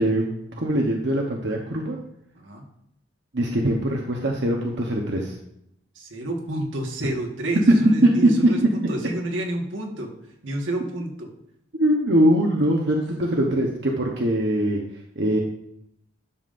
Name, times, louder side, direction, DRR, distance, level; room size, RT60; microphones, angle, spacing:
voice 1, 0.0-2.0 3.3-5.3 8.0-8.5 11.8-14.8 15.2-15.4, right 1 dB, 60° right, 0 dB, 0.9 m, -22 dB
voice 2, 2.4-2.7 5.9-10.1 10.4-11.3, right 1 dB, 80° right, 1 dB, 1.6 m, -29 dB
11.0 x 7.1 x 2.6 m, 0.76 s
head